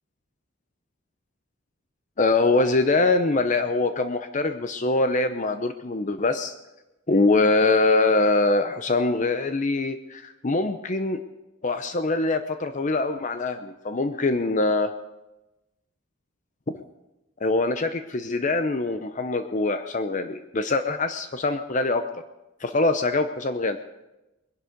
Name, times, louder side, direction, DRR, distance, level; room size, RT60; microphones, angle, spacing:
voice 1, 2.2-6.5 7.1-11.2 11.6-14.9 16.7-16.8 17.4-22.1 22.6-23.8, left 3 dB, 40° left, 9 dB, 0.7 m, -23 dB
21.0 x 11.0 x 5.1 m, 0.97 s
head